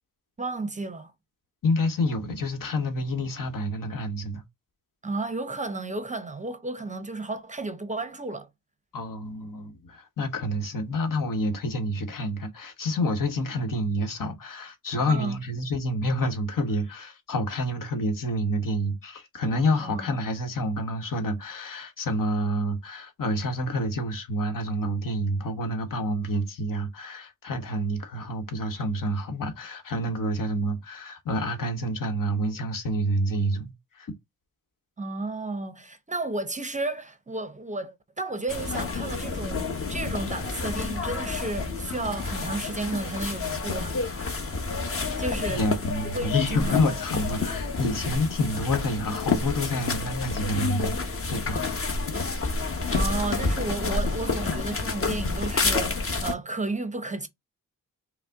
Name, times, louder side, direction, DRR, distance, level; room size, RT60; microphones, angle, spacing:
voice 1, 0.4-1.1 5.0-8.5 15.1-15.4 19.8-20.2 35.0-44.5 45.2-45.6 46.1-47.0 52.9-57.3, right 2 dB, 20° right, 0.6 m, -33 dB
voice 2, 1.6-4.4 8.9-34.1 45.0-45.2 45.5-51.9, left 1 dB, 70° left, 1.1 m, -28 dB
sound 1, 38.5-56.3, left 4 dB, 40° left, 1.0 m, -29 dB
5.4 x 2.0 x 3.4 m
cardioid pair, 85°, 34 cm